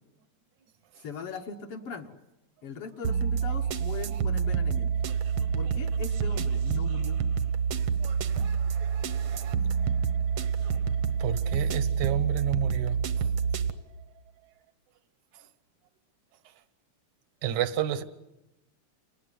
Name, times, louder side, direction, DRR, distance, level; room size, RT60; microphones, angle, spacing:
voice 1, 1.0-2.2 2.6-4.9 5.6-7.2, left 5 dB, 60° left, 8 dB, 1.9 m, -40 dB
sound 1, 3.0-13.7, right 6 dB, 60° right, 1.5 m, -27 dB
voice 2, 11.2-13.0 17.4-18.0, right 11 dB, 75° right, 14 dB, 2.4 m, -30 dB
28.0 x 19.5 x 9.8 m, 0.97 s
omnidirectional pair, 3.4 m